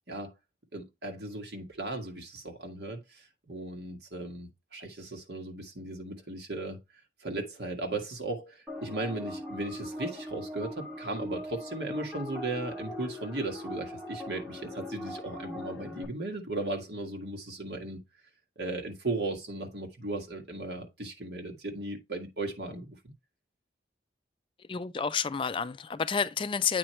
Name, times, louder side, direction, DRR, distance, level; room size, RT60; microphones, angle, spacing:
voice 1, 0.7-6.8 7.2-18.0 18.6-23.1, right 2 dB, 70° right, 1.7 m, -36 dB
sound 1, 8.7-16.0, left 1 dB, 5° right, 1.9 m, -40 dB
voice 2, 24.7-26.8, left 6 dB, 30° left, 0.4 m, -30 dB
8.6 x 4.5 x 3.1 m
head